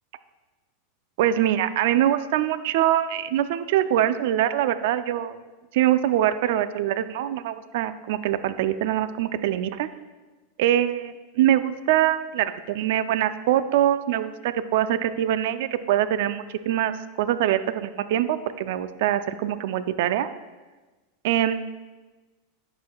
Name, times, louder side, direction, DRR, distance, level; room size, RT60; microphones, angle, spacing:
voice 1, 1.2-5.4 5.7-9.9 10.6-16.9 17.2-20.3 21.2-21.7, right 12 dB, 70° right, 13 dB, 0.4 m, -23 dB
11.0 x 6.2 x 2.3 m, 1.2 s
supercardioid pair, 120°, 0 cm